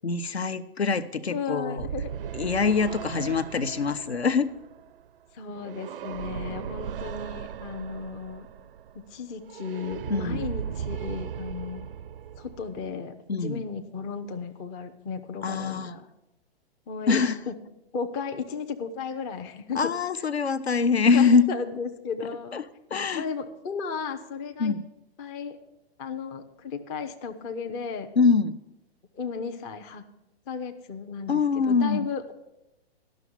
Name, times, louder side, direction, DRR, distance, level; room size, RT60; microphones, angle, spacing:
voice 1, 0.0-1.9 2.3-4.5 10.1-10.4 13.3-13.6 15.4-15.9 17.1-17.4 19.7-21.4 22.5-22.6 22.9-23.2 24.6-24.9 28.2-28.6 31.3-32.1, left 5 dB, 85° left, 12 dB, 0.7 m, -24 dB
voice 2, 1.3-2.1 5.3-8.5 9.1-11.9 12.4-16.1 16.9-17.5 17.9-19.9 21.0-22.6 23.1-24.8 25.2-25.6 26.0-28.1 29.1-30.1 30.5-32.3, left 5 dB, 10° left, 6 dB, 0.3 m, -34 dB
sound 1, 1.8-13.0, right 9 dB, 60° right, 0.4 m, -37 dB
11.5 x 6.1 x 7.1 m, 0.90 s
figure-of-eight pair, 115°, 31 cm